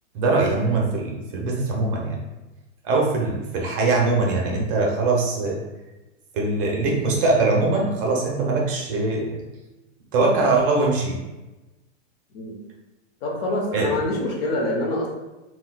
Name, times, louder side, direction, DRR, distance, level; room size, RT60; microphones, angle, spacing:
voice 1, 0.1-2.2 2.8-5.6 6.3-9.4 10.1-11.2 13.7-14.0, right 3 dB, 45° right, -1 dB, 0.7 m, -22 dB
voice 2, 13.2-15.1, left 1 dB, 50° left, -2 dB, 0.9 m, -25 dB
3.8 x 2.3 x 2.3 m, 1.1 s
hypercardioid pair, 145°, 37 cm